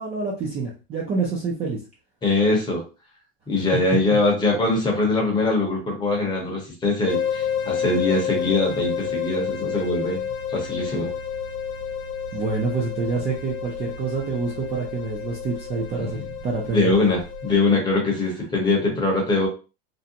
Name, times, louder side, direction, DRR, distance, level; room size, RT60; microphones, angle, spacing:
voice 1, 0.0-1.8 12.3-16.9 18.2-18.3, right 4 dB, 20° right, -3 dB, 0.4 m, -27 dB
voice 2, 2.2-2.8 3.5-10.2 10.5-11.1 16.0-16.2 16.7-19.5, left 2 dB, 15° left, 0 dB, 0.7 m, -22 dB
sound 1, 7.1-17.5, left 7 dB, 70° left, 0.8 m, -30 dB
2.6 x 2.1 x 2.7 m, 0.32 s
supercardioid pair, 155°, 31 cm